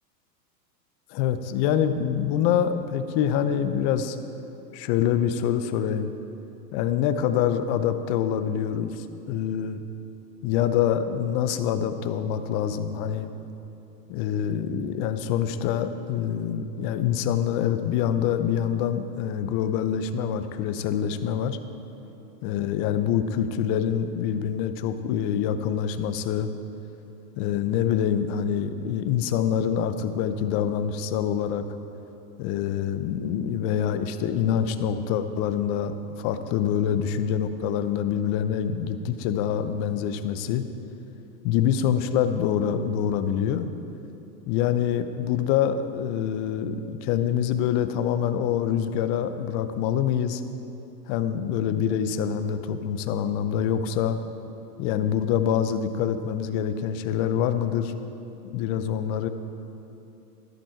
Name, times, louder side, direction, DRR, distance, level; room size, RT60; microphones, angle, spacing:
voice 1, 1.1-4.2 4.7-6.1 6.7-9.8 10.4-13.3 14.1-21.6 22.4-26.5 27.4-31.6 32.4-40.6 41.4-43.7 44.5-50.4 51.1-54.2 54.8-57.9 58.5-59.3, left 9 dB, 35° left, 10 dB, 0.7 m, -25 dB
13.0 x 11.0 x 4.5 m, 2.9 s
hypercardioid pair, 125°, 50 cm